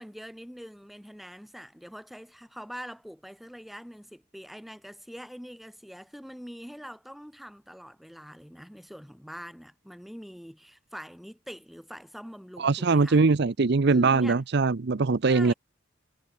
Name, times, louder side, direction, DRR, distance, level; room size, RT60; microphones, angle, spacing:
voice 1, 0.0-13.3 13.9-14.4 15.3-15.5, equal, ahead, 3.7 m, -44 dB
voice 2, 12.6-15.5, right 4 dB, 60° right, 0.7 m, -22 dB
head